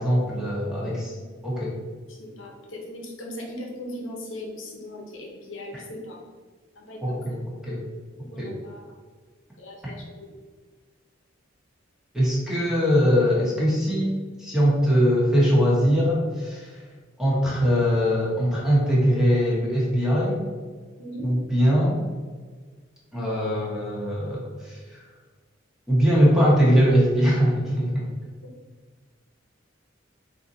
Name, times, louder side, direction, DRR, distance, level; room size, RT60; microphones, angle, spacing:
voice 1, 0.0-1.1 1.4-1.8 7.0-7.8 8.4-8.5 9.8-9.9 12.1-14.1 14.4-16.8 17.2-20.4 21.2-22.0 23.1-25.0 25.9-28.1, equal, 5° right, -6 dB, 1.1 m, -21 dB
voice 2, 0.8-1.3 2.1-6.2 6.8-7.4 8.2-9.0 9.6-10.3 21.0-21.3, left 1 dB, 70° left, -1 dB, 0.8 m, -39 dB
4.0 x 2.8 x 4.0 m, 1.5 s
head